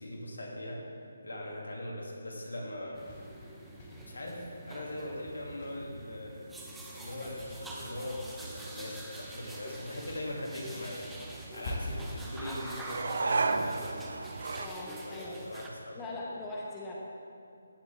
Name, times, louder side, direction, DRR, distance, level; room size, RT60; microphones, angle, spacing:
voice 1, 0.0-3.1 4.1-6.4 6.9-11.1 11.5-14.0 15.0-16.0, left 1 dB, 90° left, -2 dB, 2.6 m, -41 dB
sound 1, 2.7-4.7 5.3-6.2 6.9-9.7 10.1-12.3, left 1 dB, 40° left, 1.8 m, -45 dB
sound 2, 2.9-15.7, right 1 dB, 5° right, 0.8 m, -46 dB
sound 3, 5.0-14.7, right 3 dB, 65° right, 0.6 m, -38 dB
voice 2, 14.6-15.4 15.9-16.9, left 2 dB, 15° left, -4 dB, 1.3 m, -40 dB
15.5 x 7.6 x 3.5 m, 2.6 s
figure-of-eight pair, 160°, 0 cm